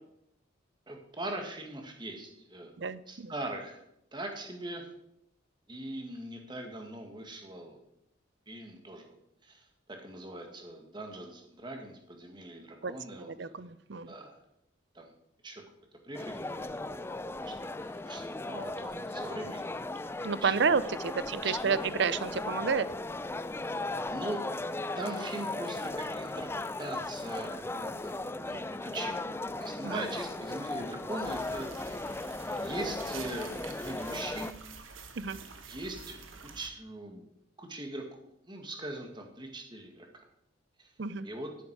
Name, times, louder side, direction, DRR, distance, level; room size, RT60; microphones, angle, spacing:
voice 1, 0.9-2.7 3.1-3.8 4.1-4.9 5.7-7.8 8.5-9.2 9.4-13.6 14.1-14.4 14.9-15.1 15.4-15.6 16.0-17.5 17.8-19.7 20.2-20.6 21.4-21.8 24.1-24.5 25.0-26.5 26.8-28.1 28.5-31.7 32.5-34.5 35.7-36.2 36.5-37.3 37.6-40.2 40.8-40.9 41.2-41.5, right 1 dB, 25° right, 3 dB, 1.8 m, -41 dB
voice 2, 2.8-3.3 12.8-14.1 20.2-22.9 29.8-30.0 35.2-35.4 41.0-41.3, right 5 dB, 60° right, 16 dB, 0.5 m, -30 dB
sound 1, 16.1-34.5, left 2 dB, 10° left, 0.3 m, -37 dB
sound 2, 31.2-36.7, right 5 dB, 85° right, 1.5 m, -48 dB
11.0 x 10.5 x 4.7 m, 0.77 s
head